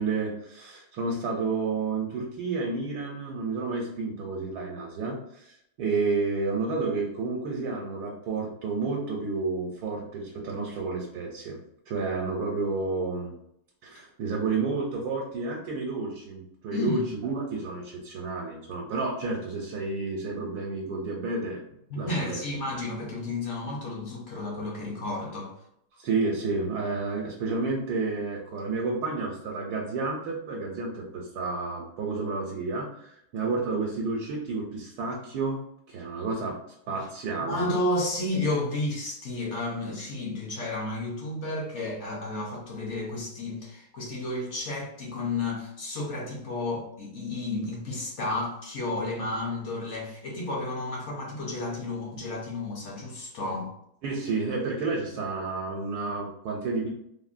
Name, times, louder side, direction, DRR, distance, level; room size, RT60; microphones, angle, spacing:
voice 1, 0.0-11.6 11.9-13.3 13.8-21.6 21.9-22.4 25.9-35.6 35.9-36.6 36.9-37.6 54.0-56.9, right 3 dB, 80° right, -2 dB, 1.1 m, -30 dB
voice 2, 16.7-17.0 21.9-25.5 36.9-37.1 37.5-53.7, left 2 dB, 60° left, -2 dB, 0.8 m, -32 dB
3.5 x 2.1 x 2.4 m, 0.75 s
omnidirectional pair, 1.7 m